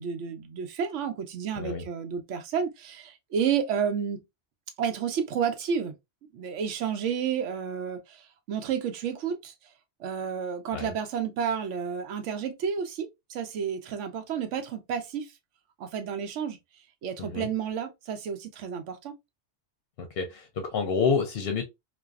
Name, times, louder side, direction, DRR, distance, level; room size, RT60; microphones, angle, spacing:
voice 1, 0.0-4.2 4.8-6.0 6.3-9.5 10.0-15.3 15.8-16.6 17.0-19.2, right 7 dB, 85° right, 0.9 m, -31 dB
voice 2, 17.2-17.5 20.0-21.6, left 5 dB, 65° left, 0.7 m, -28 dB
2.6 x 2.2 x 2.2 m
omnidirectional pair, 1.2 m